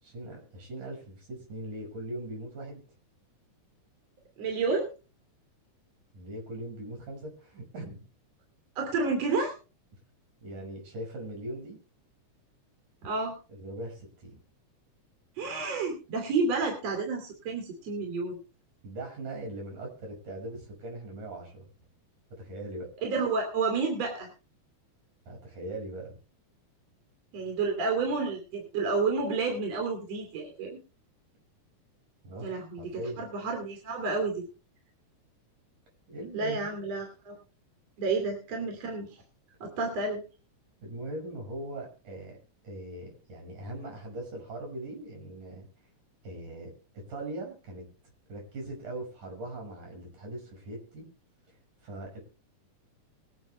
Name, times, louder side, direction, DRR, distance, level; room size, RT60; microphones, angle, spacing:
voice 1, 0.0-2.8 6.1-8.1 10.4-11.8 13.5-14.4 18.8-21.7 22.3-22.9 25.3-26.1 32.2-32.5 32.8-33.3 36.1-36.9 40.8-42.4 42.6-45.7 46.2-47.8 48.3-51.0 51.8-52.2, right 1 dB, 75° right, 2 dB, 7.4 m, -40 dB
voice 2, 4.4-4.9 8.8-9.5 13.0-13.4 15.4-18.4 23.0-24.3 27.3-30.8 32.4-34.4 36.3-37.3 38.0-39.1 39.6-40.2, right 4 dB, 55° right, 3 dB, 3.8 m, -30 dB
23.5 x 8.2 x 3.3 m, 0.34 s
omnidirectional pair, 3.6 m